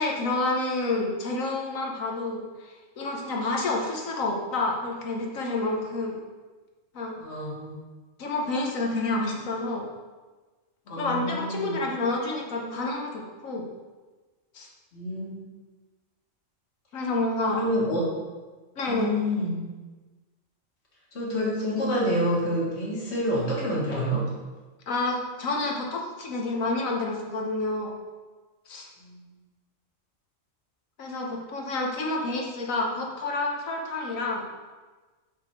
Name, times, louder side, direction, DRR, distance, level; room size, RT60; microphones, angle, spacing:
voice 1, 0.0-6.2 6.9-7.2 8.2-9.9 11.0-13.6 14.5-14.7 16.9-17.6 18.8-19.1 24.9-27.9 28.7-28.9 31.0-34.4, left 2 dB, 90° left, 0 dB, 1.5 m, -29 dB
voice 2, 7.2-7.7 10.9-11.8 14.9-15.4 17.5-18.0 18.9-19.6 21.1-24.2 29.0-29.2, equal, 55° left, -6 dB, 2.1 m, -28 dB
6.0 x 5.9 x 4.5 m, 1.3 s
omnidirectional pair, 1.4 m